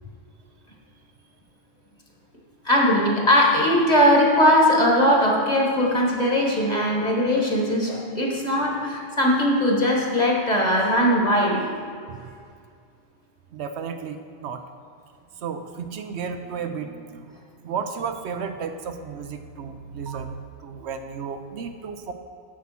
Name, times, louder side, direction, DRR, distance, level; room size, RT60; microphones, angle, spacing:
voice 1, 2.6-11.6, equal, 35° left, -1 dB, 1.6 m, -20 dB
voice 2, 13.5-14.6 15.3-22.1, right 6 dB, 70° right, 7 dB, 0.9 m, -33 dB
7.4 x 7.4 x 5.9 m, 2.3 s
omnidirectional pair, 1.2 m